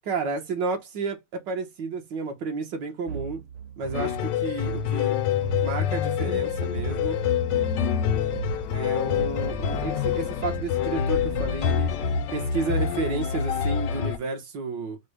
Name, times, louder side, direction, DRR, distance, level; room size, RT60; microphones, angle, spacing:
voice 1, 0.1-3.4 3.8-5.2 5.6-7.2 8.7-12.0 12.3-15.0, right 4 dB, 80° right, 1.7 m, -31 dB
sound 1, 3.1-12.5, right 8 dB, 55° right, 1.1 m, -38 dB
sound 2, 3.9-14.2, left 8 dB, 85° left, 1.3 m, -26 dB
sound 3, 5.4-10.4, left 6 dB, 70° left, 0.9 m, -36 dB
4.9 x 2.1 x 4.8 m
omnidirectional pair, 1.9 m